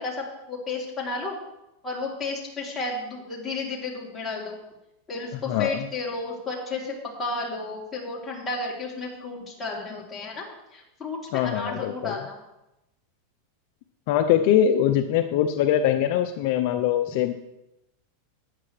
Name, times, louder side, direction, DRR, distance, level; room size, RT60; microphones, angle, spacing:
voice 1, 0.0-1.4 1.8-4.6 5.1-10.4 10.7-12.4, left 3 dB, 15° left, -4 dB, 3.1 m, -32 dB
voice 2, 5.5-5.9 11.3-12.2 14.1-17.3, left 10 dB, 55° left, 7 dB, 0.6 m, -22 dB
13.5 x 9.7 x 3.3 m, 0.92 s
supercardioid pair, 140°, 0 cm